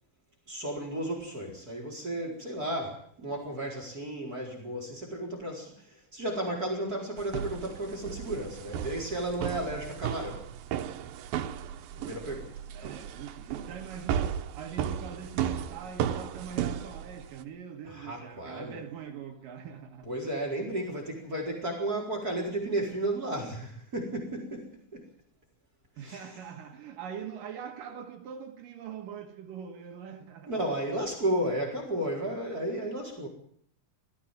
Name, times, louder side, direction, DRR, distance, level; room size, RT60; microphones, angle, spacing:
voice 1, 0.5-10.4 11.9-12.5 12.8-12.9 17.8-18.8 20.1-25.0 26.0-26.3 30.5-33.3, right 1 dB, 25° right, 4.7 m, -33 dB
sound 1, 7.2-17.4, right 9 dB, 90° right, 2.9 m, -35 dB
voice 2, 12.7-20.1 26.0-30.8, right 7 dB, 75° right, 3.2 m, -43 dB
19.5 x 14.5 x 9.1 m
omnidirectional pair, 4.0 m